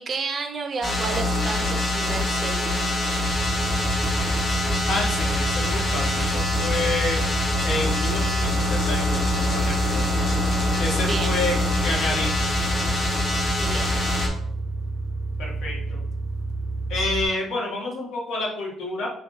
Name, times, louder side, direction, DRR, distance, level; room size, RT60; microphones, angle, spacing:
voice 1, 0.0-3.0 11.1-11.4 13.6-14.0, right 4 dB, 30° right, 5 dB, 0.5 m, -31 dB
sound 1, 0.8-14.3, left 2 dB, 45° left, 1.4 m, -24 dB
sound 2, 3.3-17.2, right 3 dB, 85° right, 0.3 m, -30 dB
voice 2, 4.9-7.2 7.6-10.2 10.8-11.5 11.8-12.4 12.6-12.8 15.4-16.0 16.9-19.1, left 2 dB, 75° left, -3 dB, 1.6 m, -29 dB
7.2 x 2.6 x 2.7 m, 0.66 s
cardioid pair, 175°, 0 cm